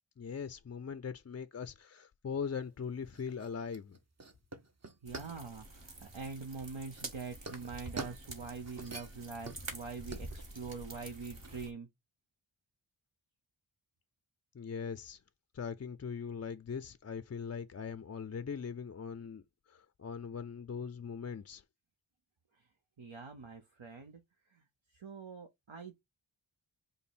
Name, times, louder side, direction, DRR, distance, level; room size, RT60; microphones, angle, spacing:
voice 1, 0.2-4.0 14.5-15.2 15.5-19.4 19.7-21.6, left 6 dB, 35° left, 0.4 m, -40 dB
sound 1, 2.4-11.7, right 3 dB, 35° right, 0.8 m, -48 dB
voice 2, 5.0-11.9 23.0-24.2 24.5-24.6 24.9-26.0, right 4 dB, 80° right, 0.9 m, -44 dB
sound 2, 5.1-11.7, right 2 dB, 65° right, 1.5 m, -48 dB
5.2 x 2.1 x 4.2 m
wide cardioid pair, 45°, 48 cm